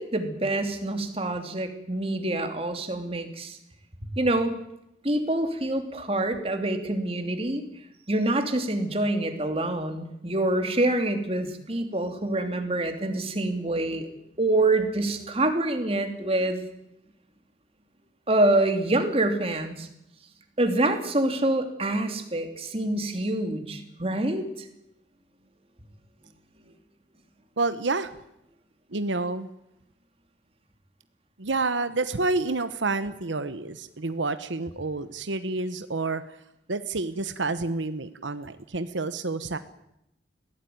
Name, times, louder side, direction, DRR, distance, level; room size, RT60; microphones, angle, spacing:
voice 1, 0.0-3.6 4.2-4.5 5.0-7.6 8.1-14.1 14.4-16.7 18.3-19.9 20.6-24.7, right 1 dB, 30° right, 6 dB, 2.9 m, -26 dB
voice 2, 27.6-28.1 28.9-29.5 31.4-36.4 36.7-39.6, right 3 dB, 90° right, 11 dB, 1.1 m, -29 dB
22.0 x 16.5 x 9.4 m, 0.82 s
head